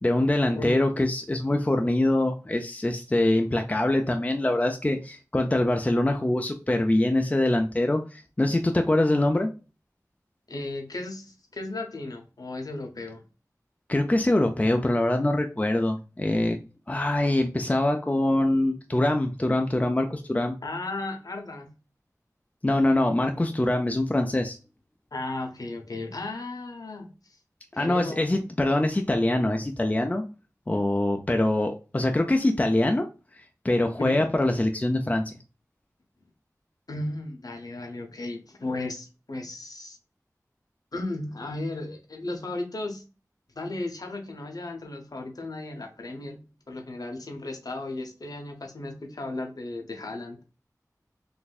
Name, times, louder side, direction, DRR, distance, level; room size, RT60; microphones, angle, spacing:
voice 1, 0.0-9.5 13.9-16.6 16.9-20.5 22.6-24.6 27.8-30.2 30.7-33.1 33.6-35.4, left 1 dB, 20° left, 4 dB, 0.4 m, -24 dB
voice 2, 10.5-13.2 20.6-21.7 25.1-27.4 27.7-28.3 34.0-34.2 36.9-40.0 40.9-43.0 43.5-50.4, left 2 dB, 75° left, 3 dB, 0.8 m, -35 dB
4.0 x 2.6 x 2.4 m, 0.32 s
wide cardioid pair, 60°, 6 cm